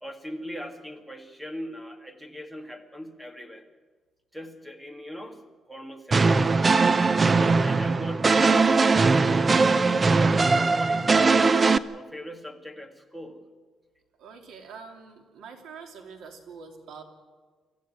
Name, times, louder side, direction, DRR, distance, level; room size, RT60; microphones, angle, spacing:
voice 1, 0.0-3.7 4.3-6.5 7.3-9.6 10.3-13.5, equal, 5° right, 6 dB, 1.8 m, -40 dB
sound 1, 6.1-11.8, right 4 dB, 25° right, 0.5 m, -20 dB
voice 2, 14.2-17.0, right 5 dB, 90° right, 3 dB, 3.0 m, -45 dB
24.5 x 14.5 x 8.6 m, 1.4 s
cardioid pair, 145°, 0 cm